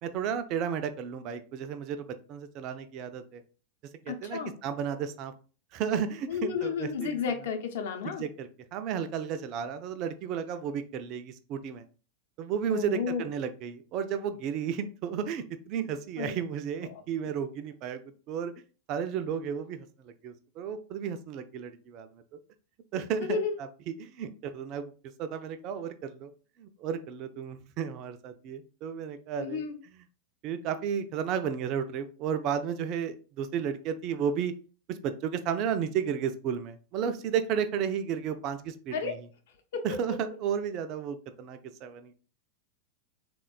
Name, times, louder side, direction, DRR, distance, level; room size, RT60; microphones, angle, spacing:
voice 1, 0.0-3.4 4.1-5.3 5.7-7.2 8.0-11.8 12.4-18.0 18.3-18.5 18.9-22.1 22.9-24.9 25.2-26.3 26.6-29.6 30.4-34.5 34.9-39.2 39.8-42.1, right 8 dB, 40° right, 10 dB, 0.3 m, -33 dB
voice 2, 4.1-4.5 6.3-8.2 12.7-13.2 16.2-16.3 16.9-17.0 23.2-23.6 29.4-29.8 38.9-39.2 39.7-40.2, left 6 dB, 55° left, 5 dB, 0.6 m, -32 dB
3.4 x 2.2 x 2.2 m, 0.36 s
figure-of-eight pair, 90°, 0 cm